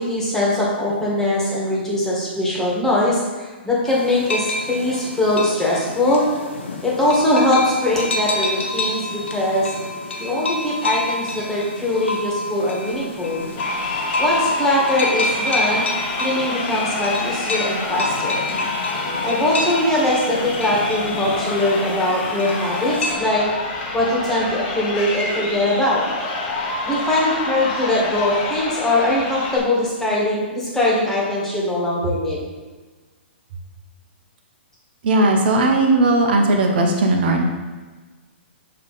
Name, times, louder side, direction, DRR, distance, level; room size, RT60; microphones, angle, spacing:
voice 1, 0.0-6.2 6.8-9.7 10.2-13.4 14.2-15.9 16.2-18.5 19.2-23.4 23.9-26.0 26.8-32.4, left 1 dB, 5° left, -6 dB, 1.8 m, -21 dB
sound 1, 3.9-23.1, left 2 dB, 80° left, 1.0 m, -28 dB
Crowd, 13.5-29.6, left 3 dB, 40° left, 1.2 m, -28 dB
voice 2, 35.0-37.4, right 2 dB, 55° right, 2 dB, 1.1 m, -17 dB
7.1 x 3.3 x 4.2 m, 1.3 s
hypercardioid pair, 130°, 6 cm